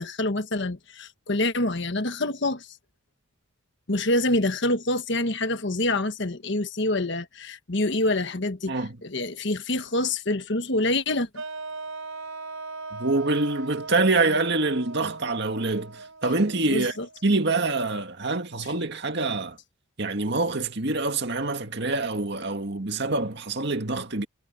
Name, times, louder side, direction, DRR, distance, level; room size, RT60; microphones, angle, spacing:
voice 1, 0.0-2.7 3.9-8.7 9.0-11.4 16.7-17.1, left 2 dB, 55° left, 1.4 m, -26 dB
voice 2, 8.7-9.0 12.9-16.9 17.2-19.6 20.0-24.3, right 3 dB, 55° right, 2.0 m, -25 dB
sound 1, 11.4-17.4, right 3 dB, 85° right, 5.0 m, -39 dB
head